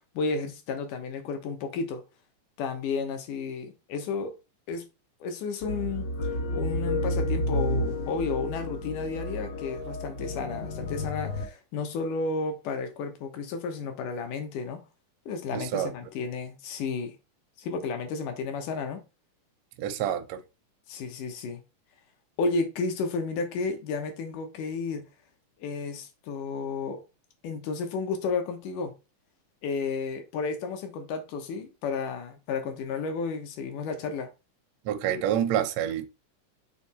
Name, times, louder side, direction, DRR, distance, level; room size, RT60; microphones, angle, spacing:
voice 1, 0.1-2.0 2.6-4.3 4.7-4.9 5.2-6.1 6.5-14.8 15.3-17.1 17.6-19.0 20.9-21.6 22.4-25.1 25.6-27.0 27.4-28.9 29.6-34.3, left 4 dB, 75° left, 2.5 m, -32 dB
sound 1, 5.6-11.5, left 1 dB, 60° left, 1.1 m, -31 dB
voice 2, 15.5-15.9 19.8-20.4 34.8-36.1, right 10 dB, 75° right, 1.5 m, -27 dB
6.4 x 3.6 x 4.2 m
omnidirectional pair, 3.7 m